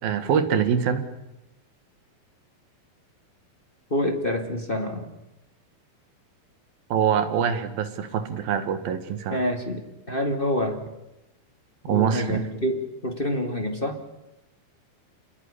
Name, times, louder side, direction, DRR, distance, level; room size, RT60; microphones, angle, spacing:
voice 1, 0.0-1.0 6.9-9.4 11.9-12.5, right 8 dB, 75° right, 10 dB, 3.6 m, -24 dB
voice 2, 3.9-5.1 9.3-10.8 11.9-14.0, left 1 dB, 20° left, 5 dB, 1.8 m, -27 dB
28.0 x 20.0 x 10.0 m, 0.94 s
omnidirectional pair, 4.2 m